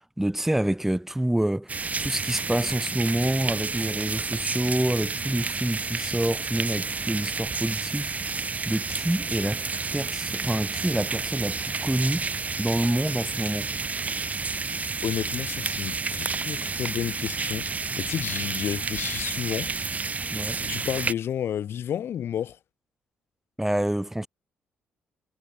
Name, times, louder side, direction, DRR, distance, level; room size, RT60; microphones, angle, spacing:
voice 1, 0.2-9.6 9.9-12.3 12.6-13.7 20.3-20.6 23.6-24.3, right 1 dB, 5° right, 2.7 m, -27 dB
sound 1, 1.7-21.1, right 4 dB, 30° right, 4.0 m, -30 dB
voice 2, 15.0-17.7 18.0-19.7 20.6-22.6, left 9 dB, 55° left, 6.4 m, -31 dB
figure-of-eight pair, 45°, 5 cm